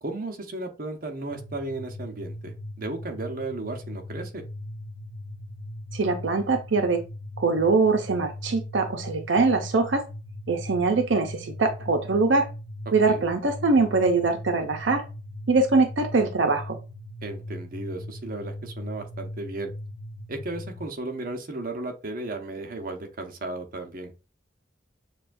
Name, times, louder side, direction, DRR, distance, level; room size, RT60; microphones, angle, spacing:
voice 1, 0.0-4.4 13.0-13.3 17.2-19.7 20.3-24.1, right 2 dB, 50° right, 4 dB, 0.8 m, -35 dB
sound 1, 1.3-20.9, left 1 dB, 75° left, 0.7 m, -39 dB
voice 2, 5.9-7.0 7.4-10.0 10.5-12.5 12.9-15.0 15.5-16.8, right 3 dB, 85° right, 6 dB, 0.6 m, -23 dB
6.8 x 2.3 x 2.6 m, 0.31 s
head